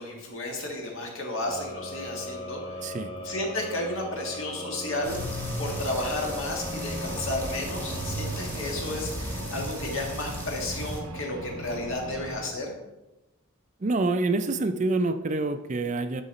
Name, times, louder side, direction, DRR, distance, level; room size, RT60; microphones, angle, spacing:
voice 1, 0.0-2.8 3.2-5.2 5.6-12.7, left 1 dB, 65° left, 0 dB, 1.7 m, -33 dB
sound 1, 1.4-10.3, left 1 dB, 25° left, 1.0 m, -40 dB
sound 2, 5.0-11.0, equal, 10° left, 1.2 m, -35 dB
sound 3, 6.6-12.5, right 1 dB, 85° right, 0.8 m, -39 dB
voice 2, 13.8-16.2, right 2 dB, 35° right, 9 dB, 0.4 m, -26 dB
10.5 x 3.9 x 4.2 m, 1.0 s
head